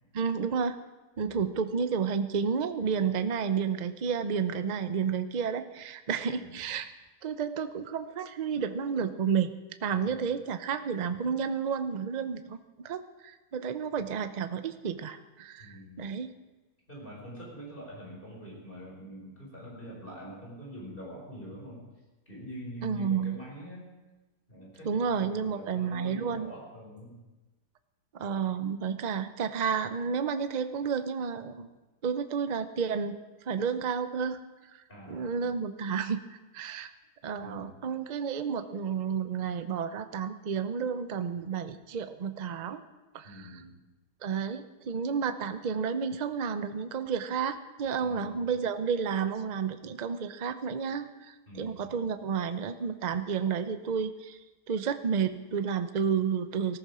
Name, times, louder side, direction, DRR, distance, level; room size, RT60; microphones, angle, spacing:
voice 1, 0.1-0.8 1.2-6.9 7.2-9.5 9.8-12.6 12.8-16.3 22.8-23.4 24.8-26.5 28.2-31.7 32.0-33.2 33.5-34.4 35.1-36.2 36.5-36.9 37.2-42.8 43.1-43.5 44.2-54.4 54.7-56.8, right 6 dB, 65° right, 10 dB, 0.4 m, -31 dB
voice 2, 6.3-6.6 9.9-10.3 15.6-16.1 16.9-21.8 22.3-23.9 24.5-27.2 34.9-35.6 37.4-37.8 43.2-43.8 48.0-48.5 51.5-51.9, equal, 30° left, -3 dB, 5.5 m, -45 dB
19.0 x 14.0 x 4.9 m, 1.1 s
omnidirectional pair, 1.8 m